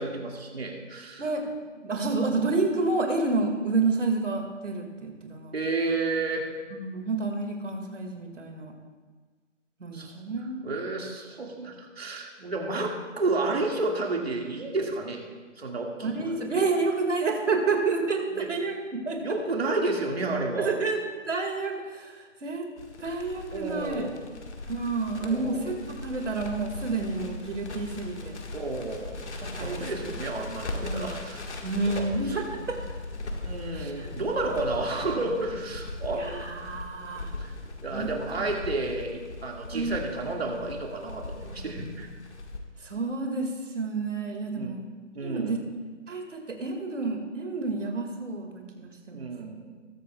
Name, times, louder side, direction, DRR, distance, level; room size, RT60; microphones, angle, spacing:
voice 1, 0.0-1.3 5.5-6.5 9.9-10.2 10.6-15.3 15.6-16.3 18.3-18.5 19.2-20.8 23.5-24.2 25.2-25.6 28.5-29.2 29.6-31.4 31.9-32.6 33.4-36.5 37.2-37.5 37.8-42.1 44.6-44.8 45.1-45.7 49.1-49.7, right 2 dB, 55° right, 1 dB, 2.1 m, -31 dB
voice 2, 1.8-5.5 6.7-8.7 9.8-10.6 16.0-18.8 19.1-19.2 20.6-21.0 21.3-22.7 23.0-24.0 24.7-28.4 29.4-29.8 30.8-31.1 31.6-32.8 33.7-34.2 36.1-37.3 37.9-38.2 39.7-40.0 42.8-44.8 45.2-45.6 46.1-49.3, right 3 dB, 70° right, 3 dB, 2.1 m, -29 dB
Crackle, 22.8-42.6, left 2 dB, 60° left, 1.7 m, -39 dB
20.5 x 8.9 x 2.3 m, 1.4 s
hypercardioid pair, 175°, 38 cm